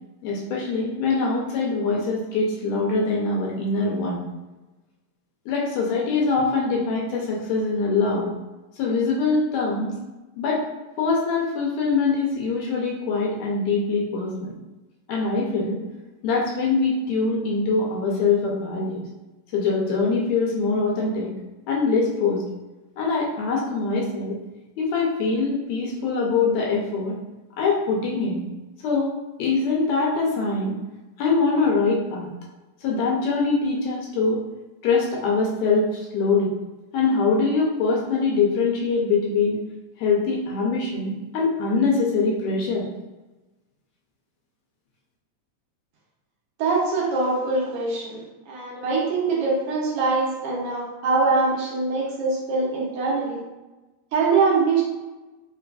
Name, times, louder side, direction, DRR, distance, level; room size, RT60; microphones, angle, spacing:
voice 1, 0.2-4.2 5.5-8.3 8.8-9.9 10.4-10.6 11.0-14.5 15.1-15.8 16.2-19.0 19.5-21.3 21.7-22.4 23.0-24.4 24.8-27.1 27.6-28.4 28.8-29.1 29.4-30.7 31.2-32.3 32.8-34.4 34.8-36.5 36.9-39.6 40.0-42.9, left 4 dB, 75° left, -2 dB, 1.8 m, -23 dB
voice 2, 46.6-48.2 48.5-53.4 54.1-54.8, right 4 dB, 70° right, -4 dB, 1.6 m, -23 dB
4.6 x 2.4 x 2.2 m, 1.1 s
omnidirectional pair, 3.3 m